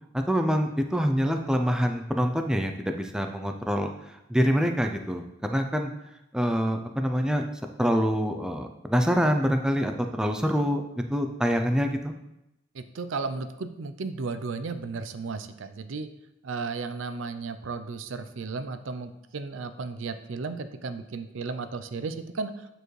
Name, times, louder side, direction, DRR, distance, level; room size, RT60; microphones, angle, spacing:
voice 1, 0.1-3.9 4.3-5.2 5.5-5.9 6.3-7.4 7.8-10.8 11.1-12.1, equal, 5° right, 5 dB, 0.4 m, -25 dB
voice 2, 12.7-16.1 16.4-22.5, right 4 dB, 75° right, 10 dB, 0.5 m, -34 dB
8.8 x 4.6 x 3.2 m, 0.89 s
head